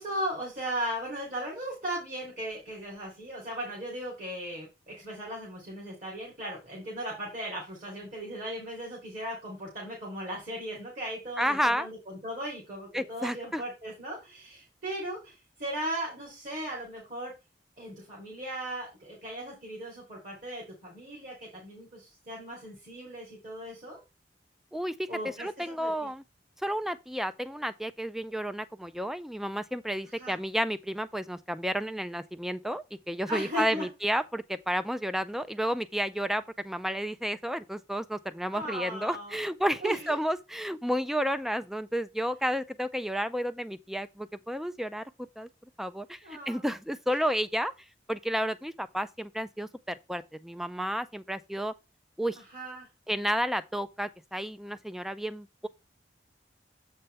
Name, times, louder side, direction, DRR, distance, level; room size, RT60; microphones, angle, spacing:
voice 1, 0.0-17.3 17.8-24.0 25.1-26.1 30.2-30.4 33.3-33.9 38.5-39.4 39.8-40.1 46.2-46.7 52.4-52.9, equal, 45° right, 3.4 m, -37 dB
voice 2, 11.4-11.9 12.9-13.6 24.7-25.1 25.4-26.2 26.6-45.0 45.4-45.5 45.8-47.7 48.1-51.7 52.2-52.4 53.1-55.7, equal, ahead, 0.4 m, -31 dB
7.8 x 5.4 x 3.4 m
head